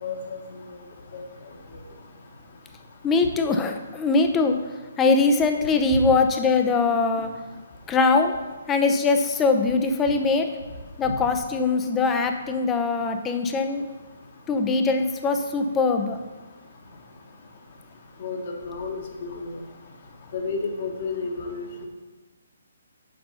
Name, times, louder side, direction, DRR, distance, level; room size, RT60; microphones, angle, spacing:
voice 1, 0.0-0.4 1.1-1.2 18.2-19.5 20.3-21.8, left 4 dB, 45° left, 2 dB, 1.4 m, -31 dB
voice 2, 3.0-4.6 5.0-7.3 7.9-8.3 8.7-10.5 11.0-13.8 14.5-16.2, left 4 dB, 15° left, 5 dB, 0.6 m, -22 dB
6.8 x 5.3 x 5.6 m, 1.3 s
figure-of-eight pair, 135°, 0 cm